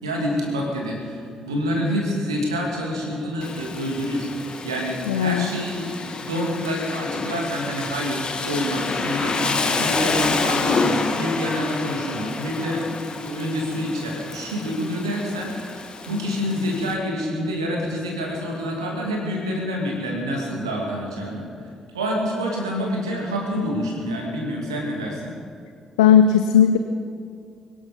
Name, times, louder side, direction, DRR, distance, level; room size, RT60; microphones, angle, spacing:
voice 1, 0.0-4.3 4.6-21.5 21.9-25.3, equal, 85° right, -1 dB, 2.5 m, -27 dB
Rain, 3.4-16.9, left 4 dB, 40° left, 1.8 m, -28 dB
voice 2, 5.1-5.5 26.0-26.8, left 8 dB, 80° left, 8 dB, 0.5 m, -16 dB
23.0 x 11.5 x 5.3 m, 2.4 s
figure-of-eight pair, 40°, 2 cm